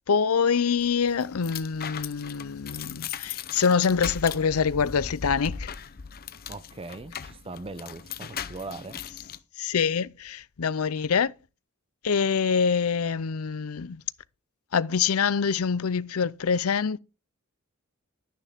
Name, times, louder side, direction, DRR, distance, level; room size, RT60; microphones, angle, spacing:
voice 1, 0.1-5.7 9.6-11.3 12.0-14.0 14.7-17.0, left 6 dB, 80° left, 0.6 m, -25 dB
sound 1, 0.8-9.4, left 7 dB, 45° left, 0.7 m, -38 dB
voice 2, 6.5-9.0, right 3 dB, 25° right, 0.6 m, -40 dB
12.0 x 10.0 x 3.5 m
head